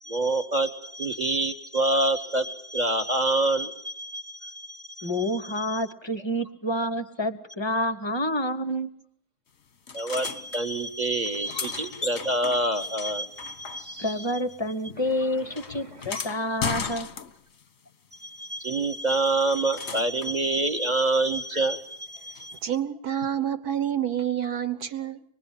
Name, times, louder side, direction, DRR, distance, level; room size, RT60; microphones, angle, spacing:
voice 1, 0.0-5.1 5.6-5.7 9.9-14.1 15.9-16.0 18.1-22.6, right 2 dB, 30° right, 0.9 m, -27 dB
voice 2, 5.0-8.9 14.0-17.1, left 1 dB, 25° left, 0.6 m, -28 dB
sound 1, 9.9-10.6 11.2-14.2 14.5-17.6 19.1-20.4 22.3-22.4, left 6 dB, 40° left, 1.0 m, -36 dB
voice 3, 22.6-25.2, right 10 dB, 50° right, 1.4 m, -28 dB
25.0 x 21.0 x 7.3 m
omnidirectional pair, 2.4 m